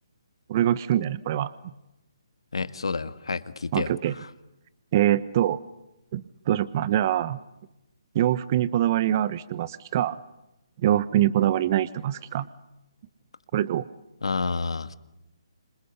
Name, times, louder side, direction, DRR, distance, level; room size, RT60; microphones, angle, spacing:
voice 1, 0.5-1.5 3.7-4.1 4.9-5.6 6.1-7.4 8.1-10.2 10.8-12.5 13.5-13.8, right 11 dB, 35° right, 17 dB, 1.0 m, -24 dB
voice 2, 2.5-3.9 14.2-14.9, left 4 dB, 80° left, 12 dB, 1.8 m, -29 dB
27.0 x 26.5 x 8.2 m, 0.90 s
hypercardioid pair, 150°, 3 cm